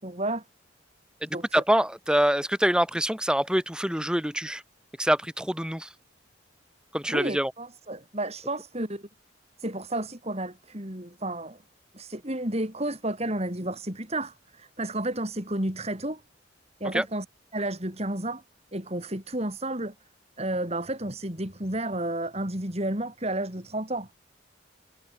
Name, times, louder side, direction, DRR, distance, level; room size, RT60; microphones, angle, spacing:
voice 1, 0.0-0.4 1.3-1.6 7.1-9.1 9.6-11.6 11.9-16.2 16.8-17.3 17.5-18.4 18.7-19.9 20.4-24.1, right 1 dB, 35° right, 5.2 m, -31 dB
voice 2, 1.2-4.6 5.0-5.9 6.9-7.5 16.9-17.0, equal, 5° right, 2.8 m, -25 dB
head